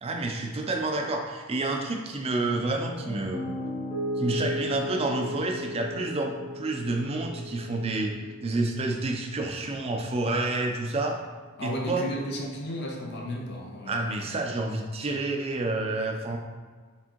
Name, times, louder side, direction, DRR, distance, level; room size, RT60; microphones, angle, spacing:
voice 1, 0.0-3.5 4.2-8.1 8.4-11.2 11.6-12.1 13.9-16.4, right 2 dB, 25° right, 2 dB, 0.4 m, -29 dB
Piano, 2.5-10.6, left 1 dB, 20° left, 1.1 m, -36 dB
voice 2, 11.6-14.1, equal, 50° left, 1 dB, 0.6 m, -33 dB
4.3 x 3.5 x 2.9 m, 1.5 s
head